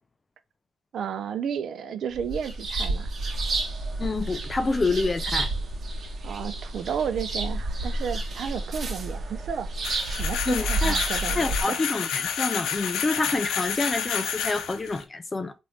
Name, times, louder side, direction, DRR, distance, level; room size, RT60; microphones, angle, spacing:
voice 1, 0.9-3.1 6.2-9.7 10.1-11.8, right 7 dB, 65° right, 0.4 m, -32 dB
sound 1, 2.1-11.6, right 2 dB, 45° right, 1.3 m, -30 dB
voice 2, 4.0-5.5 10.5-11.0 11.4-15.5, left 3 dB, 25° left, 0.4 m, -27 dB
sound 2, 9.8-15.0, left 8 dB, 85° left, 0.5 m, -30 dB
3.1 x 2.5 x 3.2 m
cardioid pair, 90°, 0 cm